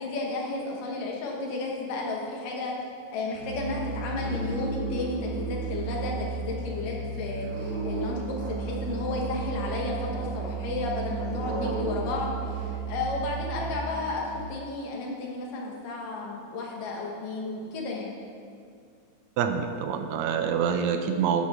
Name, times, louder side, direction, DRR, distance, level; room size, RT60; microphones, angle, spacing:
voice 1, 0.0-2.7 3.1-18.2, left 3 dB, 70° left, -1 dB, 3.1 m, -33 dB
Musical instrument, 3.3-14.1, right 5 dB, 55° right, 3.8 m, -33 dB
voice 2, 19.4-21.5, right 7 dB, 80° right, 7 dB, 1.6 m, -26 dB
11.0 x 8.5 x 5.7 m, 2.3 s
omnidirectional pair, 4.0 m